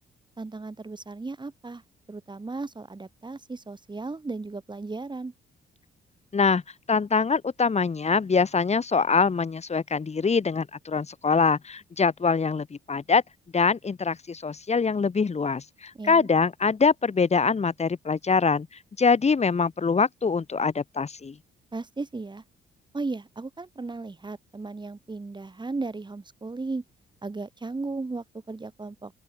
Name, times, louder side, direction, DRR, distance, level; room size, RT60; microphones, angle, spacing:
voice 1, 0.4-1.8 2.1-5.3 15.9-16.3 21.7-22.4 22.9-26.8 27.2-29.1, right 3 dB, 20° right, 7.7 m, -35 dB
voice 2, 6.9-13.2 13.5-18.7 19.0-21.4, left 5 dB, 35° left, 3.4 m, -24 dB
open air
cardioid pair, 90°, 20 cm